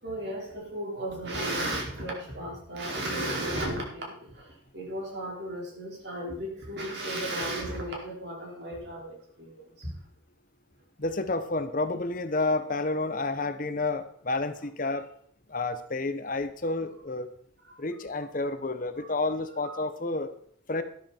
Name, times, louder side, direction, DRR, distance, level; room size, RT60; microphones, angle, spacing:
voice 1, 0.0-9.9 17.7-17.8 19.0-19.1 19.6-19.8, right 1 dB, 55° right, -2 dB, 4.8 m, -35 dB
voice 2, 11.0-15.1 15.5-17.3 17.8-20.3 20.7-20.8, left 2 dB, 40° left, 10 dB, 1.0 m, -30 dB
13.0 x 11.5 x 4.5 m, 0.62 s
head